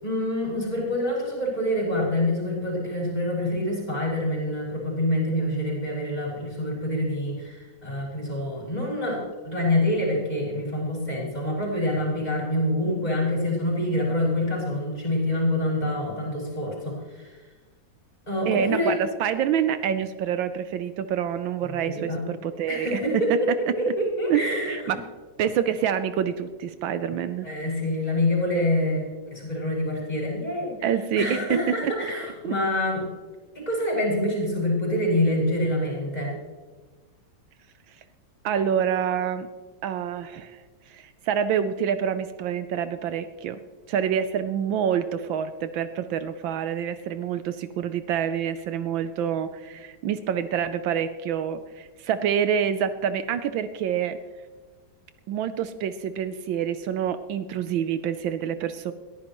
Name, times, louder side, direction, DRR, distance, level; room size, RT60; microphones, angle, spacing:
voice 1, 0.0-17.3 18.3-19.0 21.9-22.3 22.7-23.5 23.8-25.0 27.4-30.8 31.2-33.0 33.6-36.3, left 1 dB, 20° left, -4 dB, 5.5 m, -26 dB
voice 2, 18.5-23.0 24.3-25.0 25.4-27.5 30.8-31.6 31.8-31.9 32.4-32.5 38.4-39.5 39.8-40.6 40.9-43.6 43.9-54.2 55.3-58.9, right 8 dB, 80° right, 11 dB, 1.4 m, -27 dB
21.5 x 14.0 x 3.0 m, 1.4 s
omnidirectional pair, 2.2 m